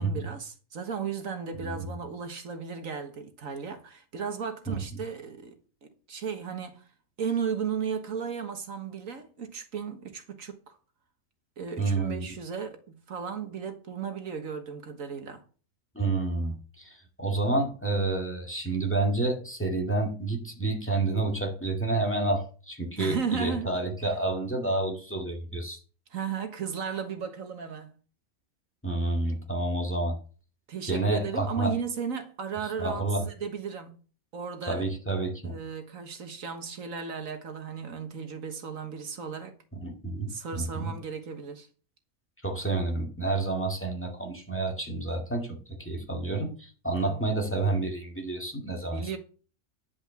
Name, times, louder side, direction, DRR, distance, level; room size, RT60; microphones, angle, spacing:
voice 1, 0.0-6.8 7.2-10.8 11.6-15.4 23.0-23.7 26.1-27.9 30.7-34.0 34.3-34.8 35.4-39.6 40.3-41.7 47.0-47.3 48.8-49.2, right 6 dB, 80° right, 1.8 m, -35 dB
voice 2, 11.8-12.2 15.9-25.8 28.8-30.2 30.8-31.7 32.8-33.2 34.7-35.5 39.8-40.9 42.4-49.2, right 2 dB, 10° left, 2.1 m, -29 dB
10.5 x 5.4 x 7.0 m
omnidirectional pair, 1.4 m